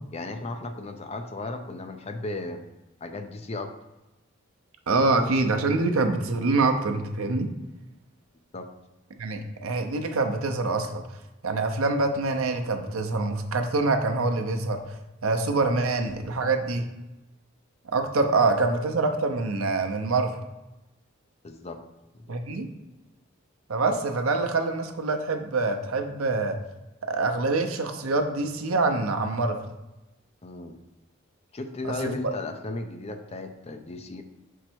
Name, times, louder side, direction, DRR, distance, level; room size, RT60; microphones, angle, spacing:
voice 1, 0.1-2.7 3.0-3.7 8.5-8.7 18.3-18.5 21.4-21.8 22.1-22.4 30.4-30.8 31.5-34.2, left 2 dB, 30° left, 7 dB, 0.5 m, -35 dB
voice 2, 4.9-7.5 9.2-11.0 11.4-14.8 15.2-16.8 17.9-20.4 22.3-22.7 23.7-26.6 27.0-29.6 32.0-32.1, right 3 dB, 85° right, 5 dB, 0.7 m, -25 dB
5.2 x 4.5 x 4.5 m, 1.0 s
head